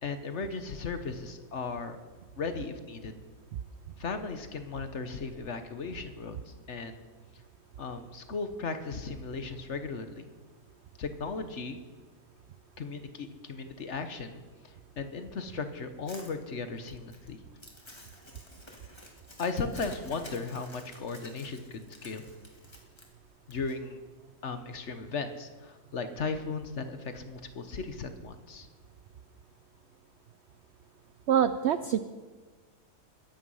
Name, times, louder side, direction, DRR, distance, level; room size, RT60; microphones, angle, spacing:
voice 1, 0.0-2.0 2.4-3.2 4.0-7.0 7.8-10.3 11.0-11.8 12.8-17.4 19.4-22.2 23.5-24.0 24.4-28.7, left 4 dB, 50° left, 9 dB, 1.2 m, -36 dB
Crumpling crinkling, 16.1-23.7, left 1 dB, 15° left, 2.0 m, -51 dB
voice 2, 31.3-32.0, right 9 dB, 90° right, 11 dB, 0.5 m, -25 dB
21.5 x 9.3 x 5.6 m, 1.4 s
omnidirectional pair, 1.7 m